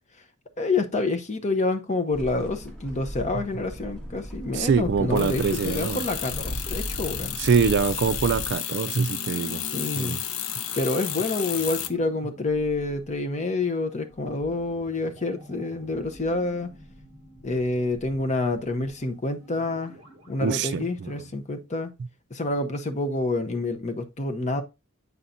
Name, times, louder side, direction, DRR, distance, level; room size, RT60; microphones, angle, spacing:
voice 1, 0.6-7.4 9.7-10.2 10.8-16.7 17.4-19.9 20.3-21.9 22.3-24.6, left 2 dB, 30° left, 0.7 m, -28 dB
sound 1, 2.1-8.5, equal, 5° left, 1.6 m, -37 dB
voice 2, 4.5-6.0 7.4-9.6 10.0-10.2 20.4-21.1, right 6 dB, 50° right, 0.3 m, -24 dB
sound 2, 5.2-11.9, left 10 dB, 75° left, 0.6 m, -32 dB
sound 3, 9.7-21.6 21.9-22.0, right 1 dB, 20° right, 2.1 m, -50 dB
8.1 x 5.7 x 2.6 m
head